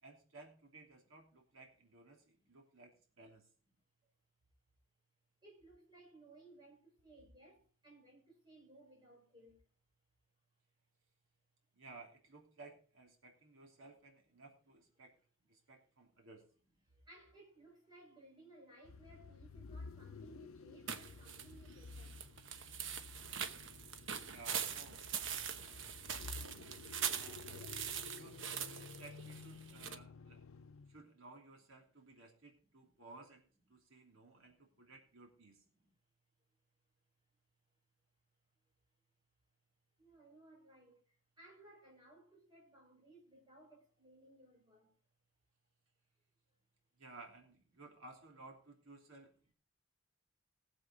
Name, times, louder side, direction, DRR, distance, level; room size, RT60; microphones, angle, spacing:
voice 1, 0.0-3.5 11.7-15.1 15.5-16.4 24.2-24.9 27.0-27.5 28.1-30.4 30.9-35.6 47.0-49.5, right 3 dB, 80° right, 3.0 m, -57 dB
voice 2, 5.4-9.6 16.9-22.3 32.8-32.9 34.1-34.8 35.7-36.0 40.0-44.9, right 2 dB, 20° right, 5.0 m, -62 dB
sound 1, 18.8-31.0, left 4 dB, 80° left, 0.6 m, -53 dB
sound 2, 20.9-30.0, right 8 dB, 60° right, 1.0 m, -43 dB
19.5 x 7.6 x 3.9 m
head